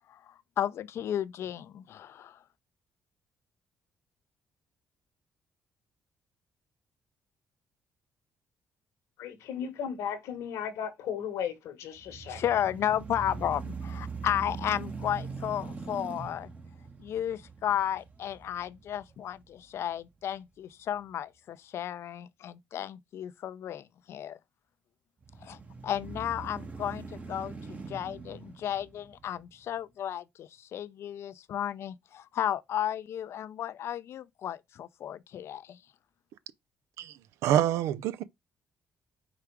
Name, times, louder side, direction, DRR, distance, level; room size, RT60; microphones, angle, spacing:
voice 1, 0.1-2.4 12.3-16.5 17.0-24.4 25.4-25.6 25.8-35.8, left 10 dB, 65° left, 0.4 m, -33 dB
voice 2, 9.2-12.6, left 8 dB, 80° left, 1.1 m, -36 dB
sound 1, 12.0-20.1 20.6-20.7 25.2-29.7, right 4 dB, 30° right, 1.1 m, -42 dB
voice 3, 37.4-38.2, right 11 dB, 85° right, 0.4 m, -26 dB
4.9 x 2.4 x 4.5 m
supercardioid pair, 65°, 5 cm